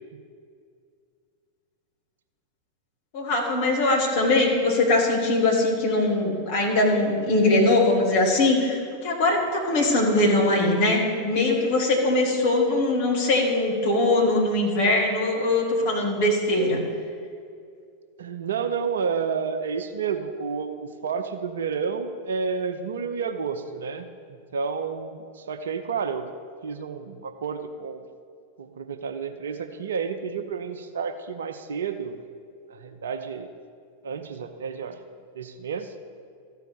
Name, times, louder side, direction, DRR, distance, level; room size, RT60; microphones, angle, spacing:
voice 1, 3.1-16.8, left 2 dB, 50° left, -1 dB, 2.1 m, -21 dB
voice 2, 18.2-26.3 26.6-28.0 28.6-32.2 32.7-33.5 34.0-35.0 35.3-35.9, right 6 dB, 65° right, 8 dB, 0.7 m, -30 dB
14.0 x 4.6 x 6.9 m, 2.2 s
figure-of-eight pair, 90°, 0 cm